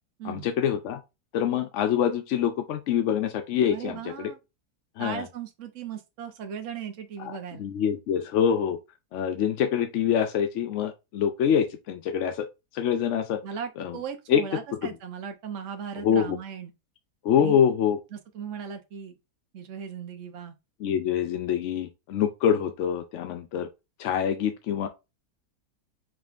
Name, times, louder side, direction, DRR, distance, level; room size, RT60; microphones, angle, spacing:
voice 1, 0.2-1.0 1.3-4.3 5.0-5.2 7.2-7.3 7.6-8.8 9.1-12.4 12.7-13.4 13.8-14.0 14.3-14.4 16.0-16.4 17.2-18.0 20.8-23.7 24.0-24.9, left 8 dB, 70° left, 0.7 m, -25 dB
voice 2, 3.7-4.4 5.0-7.6 13.4-16.7 17.4-17.6 18.1-19.2 19.5-20.5, right 7 dB, 55° right, 1.0 m, -37 dB
4.8 x 3.4 x 2.4 m
omnidirectional pair, 1.7 m